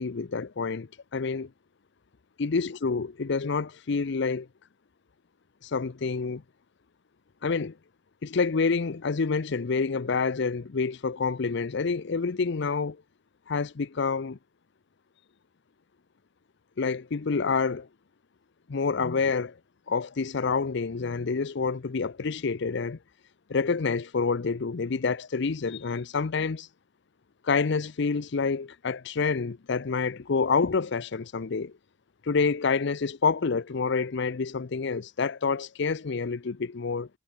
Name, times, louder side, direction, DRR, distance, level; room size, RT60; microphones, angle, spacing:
voice 1, 0.0-1.5 2.4-4.5 5.6-6.4 7.4-7.8 8.2-13.0 13.5-14.4 16.8-17.9 18.7-19.6 19.9-23.0 23.5-26.7 27.4-31.7 32.2-37.1, left 4 dB, 65° left, 0.6 m, -28 dB
head